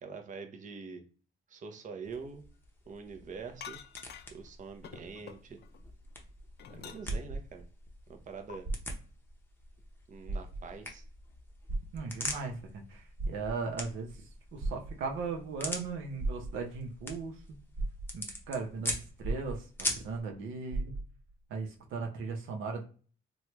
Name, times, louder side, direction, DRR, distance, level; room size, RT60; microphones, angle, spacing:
voice 1, 0.0-1.0 1.5-2.4 2.9-3.8 4.3-5.6 6.7-7.7 8.1-8.7 10.1-11.0, right 5 dB, 40° right, 5 dB, 0.6 m, -45 dB
sound 1, 2.0-20.2, left 1 dB, 10° left, 0.7 m, -44 dB
sound 2, 3.6-4.5 4.8-5.8 6.2-7.3 8.5-8.6, left 8 dB, 55° left, 0.5 m, -47 dB
sound 3, 6.1-7.9 8.5-9.2 9.6-9.7 10.2-10.9 11.7-12.5 13.0-13.9 14.6-15.3 16.2-16.9 17.4-17.5 17.7-18.5 19.2-20.0 20.3-20.4 20.7-21.3 22.0-22.1, right 2 dB, 65° right, 1.3 m, -36 dB
voice 2, 11.9-14.2 14.5-17.6 18.1-20.9 21.5-22.8, right 4 dB, 80° right, 2 dB, 0.7 m, -38 dB
3.1 x 2.2 x 2.9 m, 0.39 s
cardioid pair, 90°, 20 cm